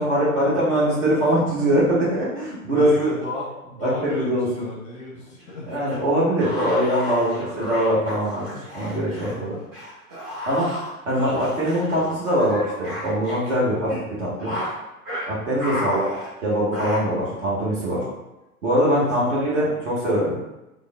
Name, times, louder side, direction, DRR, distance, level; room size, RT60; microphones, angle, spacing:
voice 1, 0.0-3.1 3.8-4.5 5.6-9.6 10.5-10.7 11.0-14.5 15.3-16.0 16.4-18.0 18.6-20.3, equal, 55° right, -6 dB, 1.2 m, -22 dB
voice 2, 1.6-1.9 2.4-5.7 9.3-9.6 13.6-13.9 15.7-16.0 17.8-18.1 18.7-19.4, left 1 dB, 15° left, -6 dB, 0.6 m, -35 dB
sound 1, 5.4-9.3 9.7-13.5 13.8-14.0 14.4-14.7 15.1-15.3 15.6-17.0, left 1 dB, 25° right, 0.9 m, -33 dB
3.5 x 2.0 x 2.2 m, 0.96 s
figure-of-eight pair, 105°, 45 cm